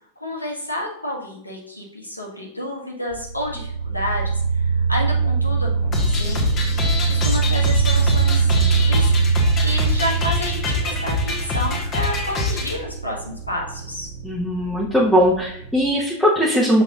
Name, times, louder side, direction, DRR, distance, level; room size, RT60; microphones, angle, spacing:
voice 1, 0.2-6.6 7.1-9.3 9.6-14.1, left 1 dB, 85° left, -1 dB, 1.6 m, -30 dB
sound 1, 3.1-15.9, right 5 dB, 45° right, 0.8 m, -22 dB
sound 2, 5.9-12.7, left 3 dB, 30° left, 1.7 m, -25 dB
voice 2, 14.2-16.8, equal, 5° left, -6 dB, 1.2 m, -19 dB
7.1 x 6.2 x 2.5 m, 0.71 s
figure-of-eight pair, 90°, 0 cm